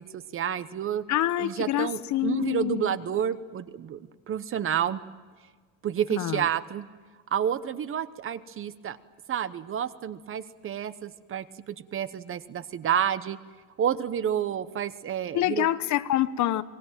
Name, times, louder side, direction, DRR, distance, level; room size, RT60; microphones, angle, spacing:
voice 1, 0.0-1.0 1.4-4.0 4.3-5.0 5.8-6.9 7.3-9.0 9.3-13.4 13.8-15.7, right 9 dB, 35° right, 15 dB, 1.0 m, -29 dB
voice 2, 1.1-3.0 6.1-6.5 15.3-16.6, left 12 dB, 50° left, 13 dB, 1.1 m, -26 dB
26.5 x 21.5 x 9.1 m, 1.4 s
cardioid pair, 135°, 37 cm